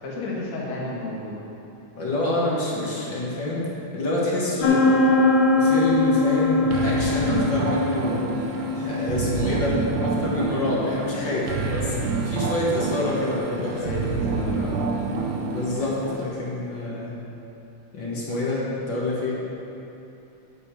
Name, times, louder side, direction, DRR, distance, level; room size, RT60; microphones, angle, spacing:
voice 1, 0.0-1.4 11.1-11.4 13.6-14.9, left 1 dB, 65° left, -4 dB, 2.7 m, -32 dB
voice 2, 1.9-3.6 3.9-5.1 5.6-8.3 8.8-12.0 12.2-14.3 15.5-17.1 17.9-19.4, left 1 dB, 45° left, -6 dB, 2.0 m, -27 dB
sound 1, 4.6-16.1, left 3 dB, 85° left, 2.4 m, -24 dB
sound 2, 6.7-16.2, right 4 dB, 75° right, 2.2 m, -28 dB
11.0 x 5.4 x 7.4 m, 2.9 s
omnidirectional pair, 3.4 m